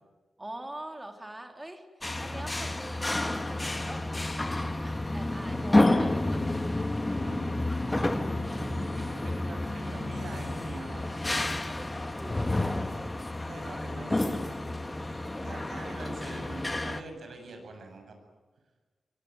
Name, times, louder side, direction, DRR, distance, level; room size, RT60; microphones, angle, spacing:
voice 1, 0.4-1.8 2.2-4.1 4.4-6.8 11.7-13.2 15.2-15.5, right 1 dB, 15° right, 4 dB, 3.4 m, -44 dB
sound 1, 2.0-17.0, left 2 dB, 15° left, 1.4 m, -30 dB
voice 2, 7.2-11.1 13.5-14.8 15.4-18.2, right 2 dB, 70° right, 4 dB, 7.7 m, -44 dB
24.0 x 24.0 x 9.6 m, 1.3 s
wide cardioid pair, 155°, 0 cm